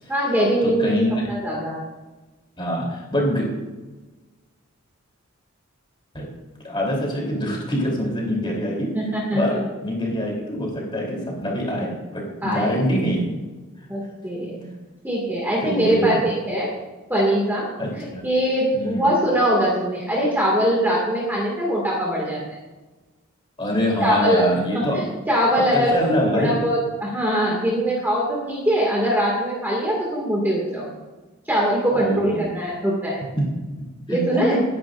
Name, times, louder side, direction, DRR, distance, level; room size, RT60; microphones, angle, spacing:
voice 1, 0.1-0.9 1.3-1.8 8.9-9.6 12.4-12.8 13.9-14.7 15.0-16.7 17.1-17.7 18.0-22.4 24.0-24.4 24.7-30.9 31.5-33.2 34.1-34.6, equal, 10° right, -4 dB, 2.2 m, -22 dB
voice 2, 0.6-1.2 2.6-3.4 6.1-6.3 6.6-8.9 9.3-9.5 9.8-13.3 15.6-16.2 17.8-18.2 18.7-19.1 23.6-25.0 25.5-26.6 31.9-32.5 33.4-33.5 34.1-34.2, equal, 20° left, -2 dB, 3.5 m, -24 dB
22.0 x 10.5 x 2.6 m, 1.2 s
head